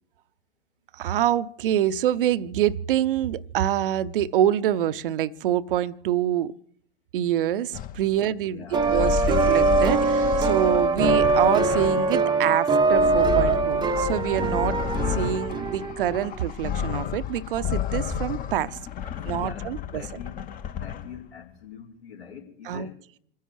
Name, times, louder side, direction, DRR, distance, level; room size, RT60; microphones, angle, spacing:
voice 1, 0.9-6.5 7.1-14.8 15.1-18.8 19.3-20.0 22.6-22.9, right 11 dB, 55° right, 0.7 m, -26 dB
sound 1, 7.7-8.1 8.7-12.2 12.7-21.2, left 8 dB, 25° left, 1.0 m, -31 dB
voice 2, 8.1-9.1 19.0-23.0, left 7 dB, 75° left, 4.9 m, -44 dB
sound 2, 8.7-16.3, right 4 dB, 15° right, 0.8 m, -22 dB
28.0 x 10.5 x 4.7 m
figure-of-eight pair, 95°, 31 cm